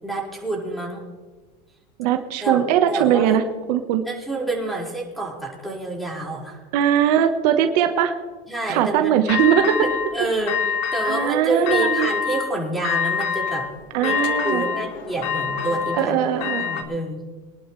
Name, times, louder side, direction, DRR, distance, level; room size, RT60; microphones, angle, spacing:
voice 1, 0.0-1.0 2.4-3.4 4.1-6.6 8.5-9.2 9.8-10.6 10.9-13.7 14.0-16.2 16.6-17.2, right 2 dB, ahead, -3 dB, 5.2 m, -28 dB
voice 2, 2.0-3.4 3.7-4.0 6.7-8.1 8.7-9.8 11.0-12.1 13.9-14.6 16.0-16.6, right 9 dB, 75° right, 6 dB, 1.4 m, -20 dB
sound 1, 9.3-10.1 10.5-11.3 11.7-12.5 12.8-16.8, left 6 dB, 70° left, 1.9 m, -25 dB
24.5 x 11.5 x 3.3 m, 1.3 s
supercardioid pair, 120°, 21 cm